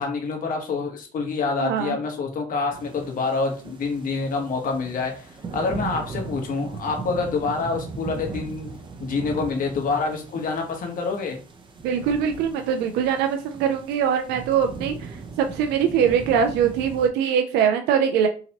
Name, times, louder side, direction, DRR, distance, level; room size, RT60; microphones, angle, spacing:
voice 1, 0.0-5.3 5.5-8.7 9.0-11.4, left 4 dB, 55° left, 2 dB, 1.2 m, -27 dB
voice 2, 1.6-2.0 11.8-18.3, right 8 dB, 85° right, 5 dB, 0.5 m, -22 dB
sound 1, 2.7-17.1, right 4 dB, 30° right, 0.8 m, -38 dB
3.8 x 2.8 x 2.9 m, 0.37 s
cardioid pair, 110°, 17 cm